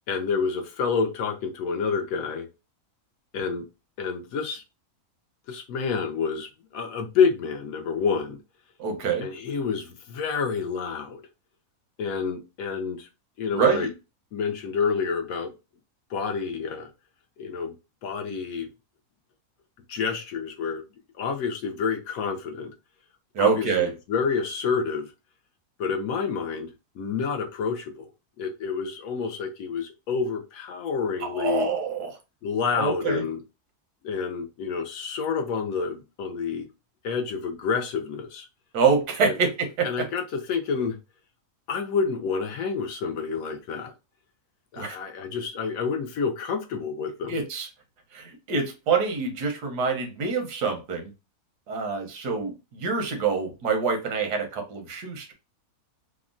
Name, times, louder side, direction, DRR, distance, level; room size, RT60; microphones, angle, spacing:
voice 1, 0.1-2.5 3.3-3.6 4.0-4.6 5.5-8.4 9.2-11.2 12.0-13.1 13.4-13.9 14.3-15.5 16.1-16.9 17.4-17.7 18.0-18.7 19.9-20.8 21.2-22.7 23.4-23.7 24.1-25.1 25.8-26.7 27.0-28.1 28.4-31.7 32.4-33.4 34.0-36.7 37.0-38.5 39.2-39.3 39.8-41.0 41.7-43.9 44.7-47.4, left 5 dB, 70° left, 1.0 m, -28 dB
voice 2, 8.8-9.3 13.5-13.9 23.3-23.9 31.2-32.2 32.8-33.2 38.7-40.1 44.8-45.0 47.3-47.7 48.1-51.1 51.7-55.3, right 5 dB, 85° right, 1.4 m, -26 dB
3.5 x 2.1 x 2.5 m
omnidirectional pair, 1.7 m